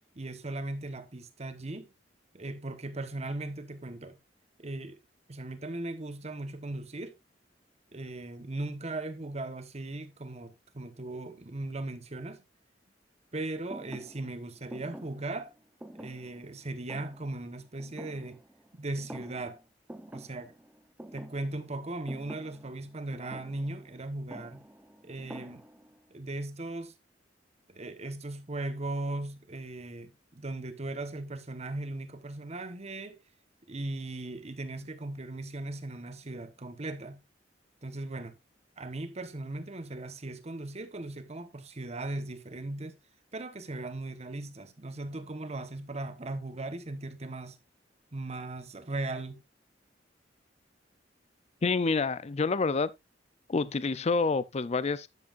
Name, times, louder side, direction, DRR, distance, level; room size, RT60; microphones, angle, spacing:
voice 1, 0.1-1.9 2.3-4.2 4.6-5.0 5.3-7.2 7.9-12.4 13.3-15.5 15.9-18.4 18.7-19.6 20.1-20.5 21.1-24.6 25.0-25.6 26.1-26.9 27.7-33.2 33.7-37.2 37.8-38.4 38.8-42.9 43.3-47.6 48.1-49.4, right 2 dB, 35° right, 1.2 m, -38 dB
Thump thud, 13.7-18.7 19.0-19.6 19.9-26.0, right 1 dB, 10° right, 0.8 m, -48 dB
voice 2, 51.6-52.9 53.5-55.1, left 4 dB, 35° left, 0.5 m, -28 dB
11.0 x 7.7 x 2.5 m
head